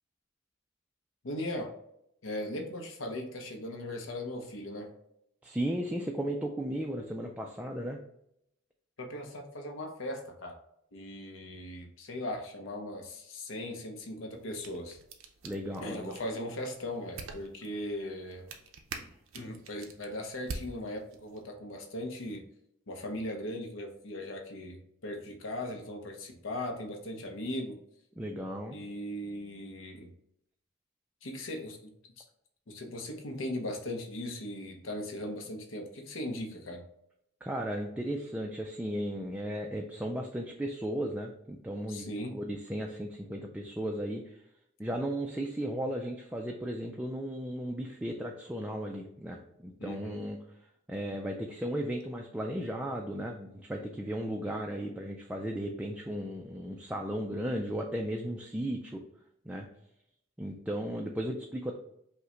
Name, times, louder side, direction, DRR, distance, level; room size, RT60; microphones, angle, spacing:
voice 1, 1.2-1.7 2.2-4.9 9.0-10.6 10.9-15.0 15.8-18.5 19.3-22.5 22.9-27.8 28.7-30.1 31.2-31.9 32.2-32.3 32.7-36.9 41.9-42.4 49.8-50.2, left 1 dB, 70° left, 3 dB, 0.7 m, -38 dB
voice 2, 5.4-8.0 15.4-16.2 28.2-28.8 37.4-44.4 44.8-50.4 50.9-59.0 59.5-59.7 60.4-61.8, right 1 dB, 5° right, 1 dB, 0.3 m, -35 dB
sound 1, 14.3-21.4, right 3 dB, 80° right, 0.6 m, -47 dB
5.4 x 2.2 x 3.7 m, 0.76 s
head